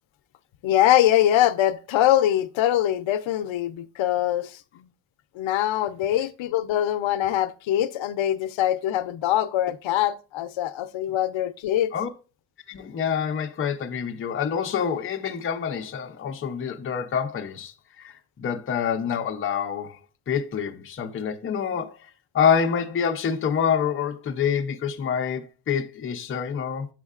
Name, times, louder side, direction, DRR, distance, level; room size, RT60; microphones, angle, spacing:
voice 1, 0.6-4.9 5.3-11.9, left 12 dB, 80° left, 0.6 m, -23 dB
voice 2, 12.7-20.0 20.3-22.1 22.3-26.9, left 7 dB, 30° left, 0.5 m, -27 dB
7.3 x 6.3 x 2.4 m
wide cardioid pair, 140°, 46 cm